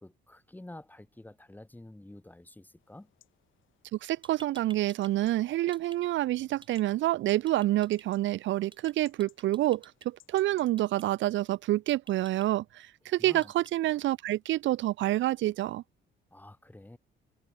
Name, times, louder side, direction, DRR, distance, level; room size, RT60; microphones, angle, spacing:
voice 1, 0.0-3.1 13.2-13.5 16.3-17.0, left 1 dB, 10° left, 1.6 m, -49 dB
sound 1, 2.8-10.7, left 12 dB, 75° left, 4.6 m, -65 dB
sound 2, 3.9-4.0 4.2-5.1 5.4-6.0 6.6-6.8 7.5-8.0 8.7-8.9 9.2-10.1 10.8-11.0 11.9-12.5 13.4-13.7, right 3 dB, 25° right, 5.4 m, -52 dB
voice 2, 4.0-15.8, right 15 dB, 70° right, 0.5 m, -28 dB
cardioid pair, 90°, 20 cm